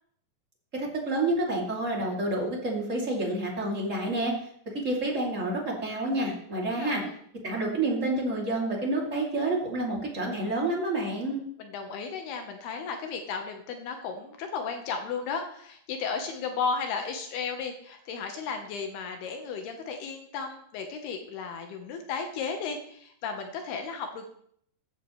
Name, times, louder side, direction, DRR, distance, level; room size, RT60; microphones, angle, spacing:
voice 1, 0.7-4.3 4.8-7.0 7.4-11.4, right 2 dB, 25° right, -2 dB, 2.2 m, -29 dB
voice 2, 6.6-7.2 11.6-24.3, left 5 dB, 75° left, 5 dB, 2.9 m, -34 dB
15.0 x 10.5 x 3.2 m, 0.65 s
omnidirectional pair, 4.8 m